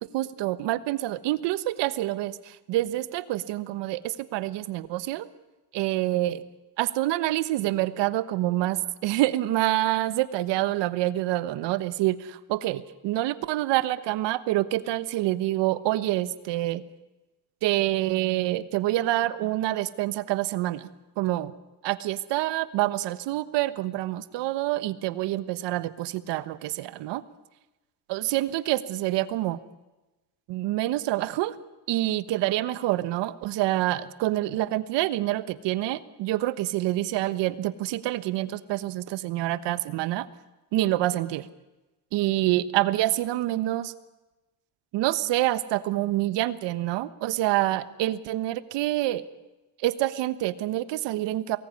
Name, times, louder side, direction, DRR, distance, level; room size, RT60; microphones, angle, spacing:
voice 1, 0.1-5.3 5.7-6.4 6.8-16.8 17.6-20.9 21.2-21.5 21.8-27.2 28.1-29.6 30.5-31.5 31.9-40.3 40.7-41.5 42.1-43.9 44.9-49.2 49.8-51.6, right 15 dB, 90° right, 15 dB, 1.3 m, -27 dB
23.0 x 19.0 x 9.7 m, 1.1 s
cardioid pair, 105°, 42 cm